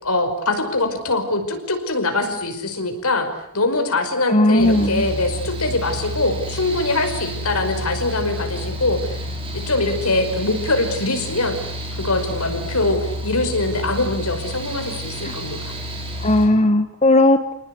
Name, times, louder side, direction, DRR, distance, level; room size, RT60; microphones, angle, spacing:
voice 1, 0.0-3.3 3.5-9.2 9.5-11.6 11.9-15.7, left 2 dB, 85° left, 6 dB, 5.4 m, -23 dB
voice 2, 4.3-5.1 15.2-15.3 16.2-17.5, left 1 dB, 30° left, 7 dB, 1.6 m, -16 dB
Mechanical fan, 4.6-16.5, equal, 25° right, 6.0 m, -30 dB
29.0 x 19.5 x 9.6 m, 0.76 s
head